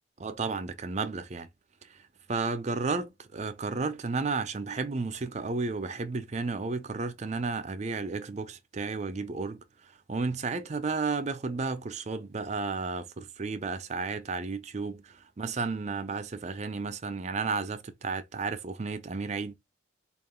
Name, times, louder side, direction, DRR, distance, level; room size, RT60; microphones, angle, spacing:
voice 1, 0.2-1.5 1.8-2.0 2.3-9.6 10.1-19.5, right 4 dB, 40° right, 0.5 m, -33 dB
3.7 x 2.4 x 3.5 m
head